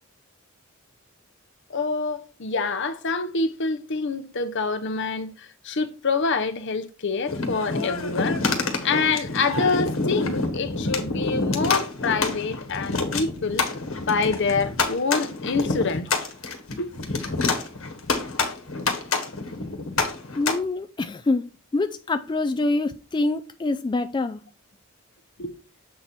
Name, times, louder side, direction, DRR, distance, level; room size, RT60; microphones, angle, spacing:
voice 1, 1.7-8.4 8.8-13.7 14.0-16.1 16.8-16.9 25.4-25.5, left 4 dB, 60° left, 0.7 m, -26 dB
sound 1, 7.3-20.5, left 3 dB, 80° left, 1.3 m, -27 dB
voice 2, 20.3-21.4 21.7-24.4, left 2 dB, 20° left, 0.3 m, -25 dB
7.5 x 4.1 x 4.4 m
head